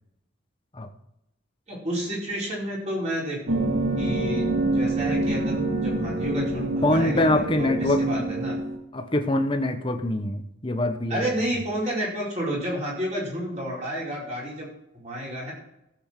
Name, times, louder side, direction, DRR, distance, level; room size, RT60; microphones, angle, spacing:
voice 1, 1.7-3.6 4.0-4.4 4.7-8.5 11.1-14.7 14.9-15.5, right 1 dB, 35° right, -4 dB, 4.8 m, -30 dB
sound 1, 3.5-8.8, right 2 dB, 80° right, 2.0 m, -26 dB
voice 2, 6.8-8.4 8.9-11.3, left 1 dB, 25° left, 7 dB, 1.0 m, -24 dB
15.5 x 8.0 x 4.5 m, 0.85 s
head